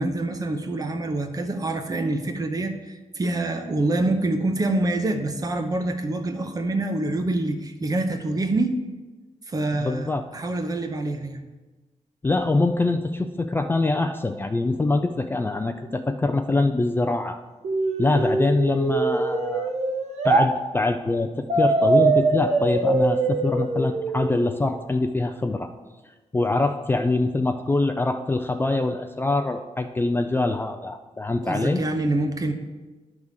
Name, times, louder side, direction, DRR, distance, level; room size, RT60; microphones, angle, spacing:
voice 1, 0.0-8.8 9.5-11.4 31.4-32.5, right 2 dB, 30° right, 6 dB, 0.8 m, -26 dB
voice 2, 9.8-10.2 12.2-17.4 18.0-19.7 20.2-25.7 26.3-31.8, left 2 dB, 15° left, 5 dB, 0.3 m, -24 dB
sound 1, 17.6-20.5 21.5-24.5, right 3 dB, 60° right, 0.9 m, -23 dB
10.5 x 3.6 x 6.4 m, 1.2 s
wide cardioid pair, 150°, 13 cm